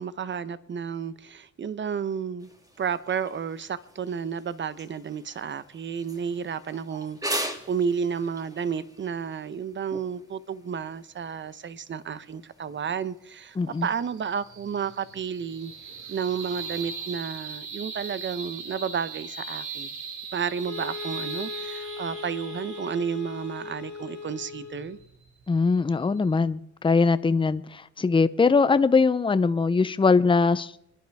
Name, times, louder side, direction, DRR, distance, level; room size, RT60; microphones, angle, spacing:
voice 1, 0.0-2.5 2.8-15.7 16.1-19.9 20.3-25.0, right 7 dB, 40° right, 15 dB, 0.9 m, -31 dB
sound 1, 2.4-16.8, right 1 dB, 10° right, 1.7 m, -42 dB
voice 2, 13.6-13.9 25.5-30.7, left 4 dB, 15° left, 14 dB, 0.6 m, -21 dB
sound 2, 13.7-26.4, right 5 dB, 75° right, 1.9 m, -40 dB
sound 3, 20.6-25.0, left 5 dB, 65° left, 1.5 m, -39 dB
27.5 x 10.5 x 3.5 m, 0.79 s
cardioid pair, 90°, 30 cm